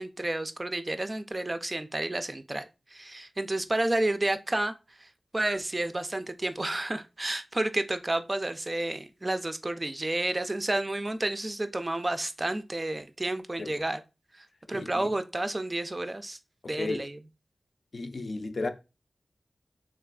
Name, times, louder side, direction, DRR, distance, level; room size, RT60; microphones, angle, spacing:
voice 1, 0.0-2.7 2.9-4.7 5.0-5.1 5.3-14.0 14.3-16.4 16.7-17.2, right 1 dB, 30° right, 0.3 m, -31 dB
voice 2, 14.7-15.1 16.6-17.1 17.9-18.7, left 3 dB, 65° left, 0.4 m, -34 dB
3.4 x 2.3 x 2.3 m
wide cardioid pair, 55°, 0 cm